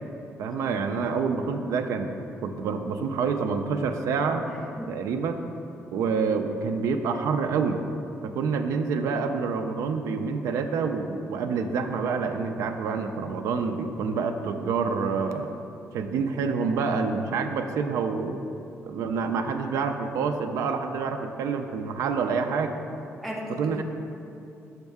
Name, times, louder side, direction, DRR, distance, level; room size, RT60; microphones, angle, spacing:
voice 1, 0.4-2.1 2.4-4.5 4.9-5.4 5.9-7.8 8.2-15.5 15.9-18.4 18.9-22.8 23.5-23.8, right 5 dB, 80° right, 6 dB, 0.4 m, -27 dB
voice 2, 4.4-4.9 23.2-23.8, equal, ahead, -4 dB, 0.6 m, -36 dB
6.4 x 5.3 x 3.4 m, 2.7 s
cardioid pair, 180°, 5 cm